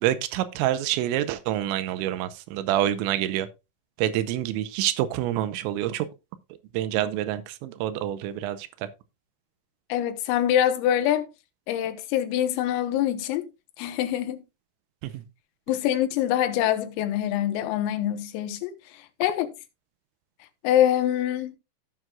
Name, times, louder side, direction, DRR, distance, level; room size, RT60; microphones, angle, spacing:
voice 1, 0.0-3.5 4.0-6.1 6.7-8.9 15.0-15.2, right 12 dB, 85° right, 2.8 m, -27 dB
voice 2, 9.9-11.3 11.7-13.5 13.8-14.4 15.7-18.8 19.2-19.5 20.6-21.6, left 11 dB, 90° left, 3.7 m, -24 dB
15.5 x 6.1 x 2.3 m
omnidirectional pair, 5.8 m